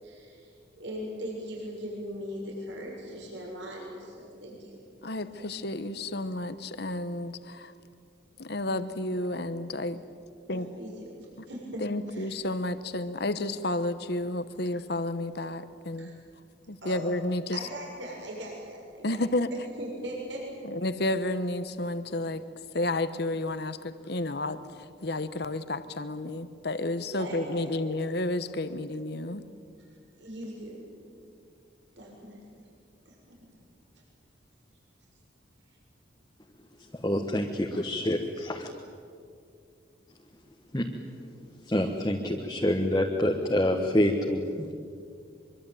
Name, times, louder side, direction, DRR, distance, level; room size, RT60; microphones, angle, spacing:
voice 1, 0.0-4.8 5.4-5.6 10.5-11.1 11.5-11.8 12.1-12.4 15.9-16.1 16.8-17.0 17.5-20.4 27.1-27.7 29.8-30.8 32.0-32.5 33.0-33.1, equal, 70° right, -1 dB, 6.9 m, -40 dB
voice 2, 5.0-7.7 8.4-10.0 10.5-10.7 11.8-16.1 16.7-17.7 19.0-19.5 20.6-22.4 22.7-29.4, left 2 dB, 55° left, 12 dB, 1.1 m, -31 dB
voice 3, 36.9-37.4 37.8-38.7 40.7-40.9 41.7-44.7, left 1 dB, 20° left, 1 dB, 1.4 m, -27 dB
24.5 x 23.5 x 9.2 m, 2.4 s
head